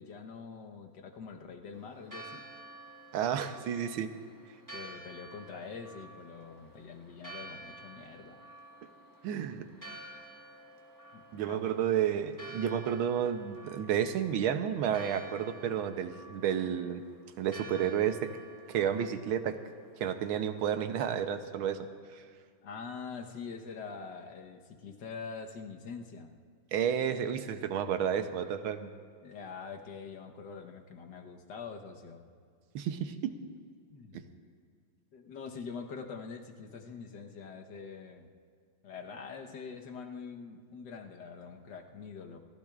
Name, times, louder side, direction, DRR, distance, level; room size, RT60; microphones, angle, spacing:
voice 1, 0.0-2.4 4.7-8.5 11.1-11.7 12.2-12.3 22.6-26.4 29.2-32.2 33.9-34.3 35.1-38.3 38.8-42.4, left 5 dB, 60° left, 3 dB, 1.7 m, -44 dB
Church bell, 1.7-21.2, right 2 dB, 10° right, 1.0 m, -51 dB
voice 2, 3.1-4.1 9.2-9.7 11.3-17.0 17.4-18.3 18.7-19.6 20.0-21.8 26.7-28.9 32.7-33.3, right 9 dB, 80° right, 9 dB, 1.6 m, -31 dB
28.5 x 15.0 x 2.4 m, 2.2 s
omnidirectional pair, 2.2 m